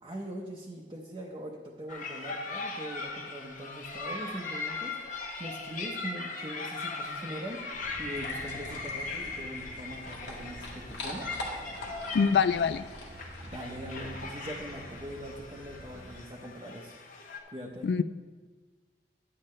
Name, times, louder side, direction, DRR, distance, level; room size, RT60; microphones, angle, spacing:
voice 1, 0.0-11.3 13.4-17.0 17.5-17.9, right 1 dB, 25° right, -2 dB, 0.8 m, -42 dB
sound 1, 1.9-17.4, left 3 dB, 50° left, 1.0 m, -39 dB
sound 2, 7.7-16.2, right 1 dB, 85° right, 1.3 m, -48 dB
sound 3, 8.1-13.7, left 1 dB, 90° left, 1.5 m, -44 dB
voice 2, 12.1-12.8 17.8-18.0, left 6 dB, 65° left, 14 dB, 0.3 m, -24 dB
10.5 x 8.7 x 3.2 m, 1.4 s
head